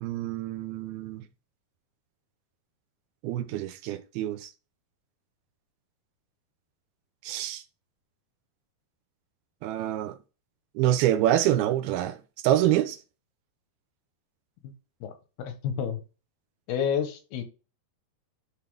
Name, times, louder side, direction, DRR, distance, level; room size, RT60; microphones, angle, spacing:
voice 1, 0.0-1.2 3.2-4.5 7.2-7.6 9.6-10.2 10.8-12.2 12.4-13.0, right 12 dB, 90° right, 2.7 m, -26 dB
voice 2, 15.4-16.0 16.7-17.4, left 8 dB, 90° left, 3.1 m, -29 dB
11.5 x 3.9 x 3.5 m
omnidirectional pair, 4.4 m